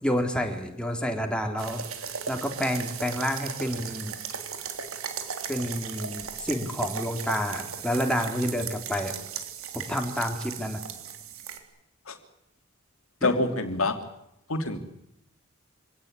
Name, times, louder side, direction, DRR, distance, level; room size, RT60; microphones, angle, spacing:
voice 1, 0.0-4.1 5.5-9.1 9.7-10.8 13.2-13.3, equal, 5° left, 3 dB, 3.4 m, -29 dB
sound 1, 1.6-11.6, right 7 dB, 80° right, 3.5 m, -37 dB
voice 2, 13.2-14.0 14.5-14.8, left 2 dB, 75° left, 6 dB, 3.1 m, -26 dB
26.0 x 18.0 x 9.8 m, 0.80 s
head